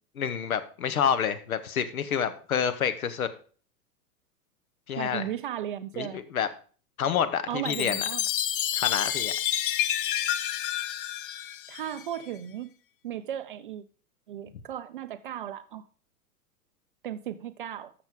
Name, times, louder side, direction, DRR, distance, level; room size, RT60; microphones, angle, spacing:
voice 1, 0.2-3.3 4.9-5.3 5.9-6.5 7.0-8.0 8.7-9.3, left 8 dB, 60° left, 1.2 m, -28 dB
voice 2, 5.0-6.2 7.5-8.2 11.7-12.7 13.0-13.8 14.3-15.8 17.0-17.9, right 11 dB, 35° right, 0.4 m, -35 dB
Chime, 7.7-12.2, left 11 dB, 35° left, 0.5 m, -29 dB
13.0 x 6.6 x 3.7 m
figure-of-eight pair, 100°, 47 cm